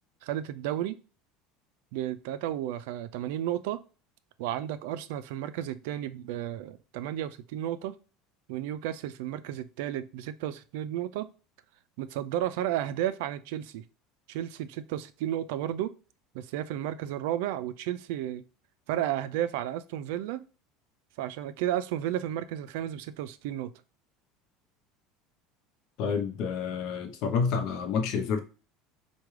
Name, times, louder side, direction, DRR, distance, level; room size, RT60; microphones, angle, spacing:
voice 1, 0.2-1.0 1.9-3.8 4.4-7.9 8.5-11.3 12.0-13.8 14.3-15.9 16.3-18.4 18.9-20.5 21.2-23.7, right 12 dB, 80° right, 0.3 m, -33 dB
voice 2, 26.0-28.4, left 6 dB, 60° left, 0.7 m, -29 dB
4.7 x 2.2 x 3.1 m
supercardioid pair, 135°, 0 cm